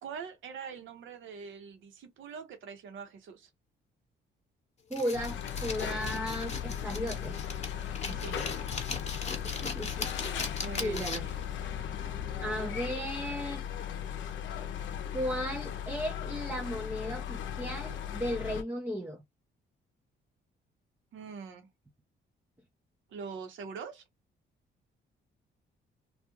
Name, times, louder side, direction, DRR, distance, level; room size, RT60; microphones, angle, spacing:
voice 1, 0.0-3.5 8.1-8.8 10.6-11.2 21.1-21.7 23.1-24.0, right 6 dB, 75° right, 0.9 m, -43 dB
sound 1, 4.9-11.4, left 4 dB, 35° left, 0.9 m, -39 dB
voice 2, 4.9-7.4 8.1-8.5 9.4-11.2 12.4-13.6 15.1-19.2, equal, 10° right, 0.5 m, -36 dB
sound 2, 5.1-18.6, left 9 dB, 70° left, 0.6 m, -37 dB
2.3 x 2.3 x 2.9 m
cardioid pair, 90°, 20 cm